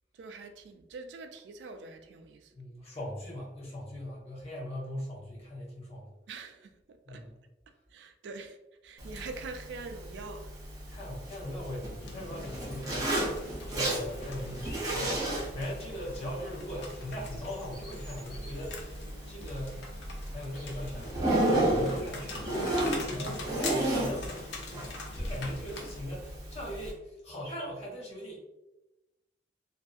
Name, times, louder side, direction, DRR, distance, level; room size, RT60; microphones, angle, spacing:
voice 1, 0.1-2.5 6.3-7.3 7.9-8.6 8.8-10.5, right 3 dB, 75° right, 0.3 m, -44 dB
voice 2, 2.5-6.1 7.0-7.4 10.9-19.0 19.2-19.9 20.3-22.4 22.8-24.3 24.7-28.4, equal, 35° left, 0.9 m, -40 dB
Zipper (clothing), 9.0-26.9, right 1 dB, 20° right, 0.7 m, -34 dB
sound 1, 12.0-26.0, left 3 dB, 75° left, 0.5 m, -44 dB
sound 2, 14.6-15.7 17.2-18.8 20.5-21.0 21.3-21.7 22.0-24.3 27.4-27.7, equal, 60° left, 1.2 m, -53 dB
2.6 x 2.5 x 2.3 m
head